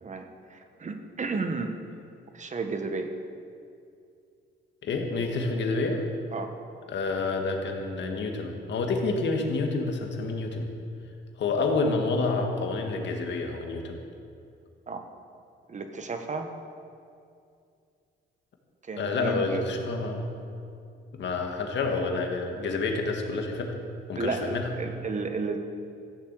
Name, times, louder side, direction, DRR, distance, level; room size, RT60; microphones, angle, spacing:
voice 1, 0.0-1.7 2.3-3.1 6.3-6.5 14.9-15.0 15.7-16.5 18.8-19.6 24.1-25.6, right 4 dB, 40° right, 6 dB, 1.3 m, -32 dB
voice 2, 4.8-6.0 6.9-10.7 11.4-14.0 19.0-20.2 21.1-23.7 24.1-24.7, left 3 dB, 65° left, 3 dB, 2.0 m, -28 dB
15.0 x 7.1 x 7.8 m, 2.5 s
cardioid pair, 90°, 20 cm